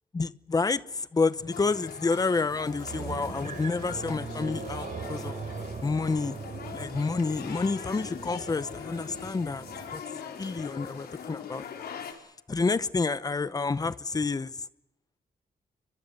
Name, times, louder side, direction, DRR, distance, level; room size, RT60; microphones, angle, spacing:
voice 1, 0.1-5.4 5.8-6.4 6.7-9.6 9.9-10.0 10.4-11.6 12.5-14.5, left 4 dB, 25° left, 0.9 m, -29 dB
sound 1, 1.4-9.9, right 5 dB, 50° right, 5.0 m, -41 dB
sound 2, 1.5-12.1, left 7 dB, 85° left, 4.5 m, -42 dB
29.5 x 24.0 x 6.7 m
wide cardioid pair, 160°, 16 cm